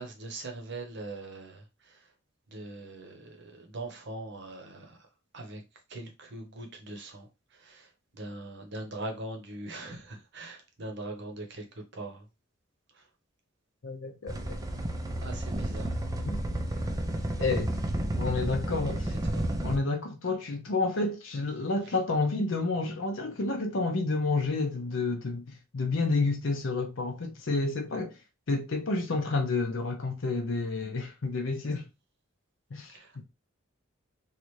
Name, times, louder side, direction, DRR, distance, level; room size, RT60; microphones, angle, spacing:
voice 1, 0.0-1.6 1.9-2.0 2.5-5.0 5.3-5.6 5.9-7.3 7.6-7.9 8.1-12.2 15.2-15.9 18.8-18.9 19.3-19.5 32.9-33.1, right 2 dB, 60° right, 0.8 m, -41 dB
voice 2, 13.8-14.6 16.2-16.4 17.4-17.7 18.2-19.1 19.6-28.2 28.5-31.9 32.7-33.0, left 3 dB, 65° left, 0.6 m, -30 dB
sound 1, 14.3-19.8, right 1 dB, 15° right, 0.4 m, -31 dB
3.2 x 2.5 x 3.0 m
head